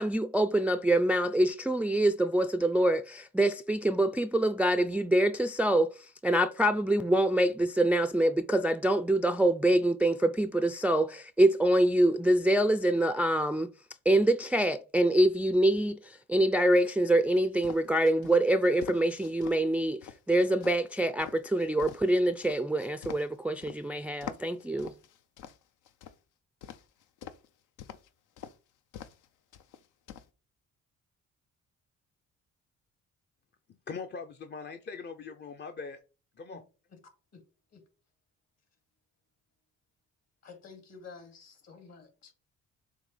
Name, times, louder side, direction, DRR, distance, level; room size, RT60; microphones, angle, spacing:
voice 1, 0.0-5.9 6.2-13.7 14.1-20.0 20.3-24.9, right 1 dB, 5° right, 0.3 m, -25 dB
sound 1, 17.6-19.6 20.0-23.8 24.2-26.2 26.6-27.5 27.8-28.1 28.4-28.5 28.9-29.3 29.5-30.3, left 9 dB, 80° left, 0.6 m, -45 dB
voice 2, 33.9-36.0 36.4-36.6, left 5 dB, 35° left, 0.6 m, -41 dB
voice 3, 40.4-42.3, left 5 dB, 60° left, 2.3 m, -50 dB
7.2 x 2.7 x 5.5 m
cardioid pair, 90°, 30 cm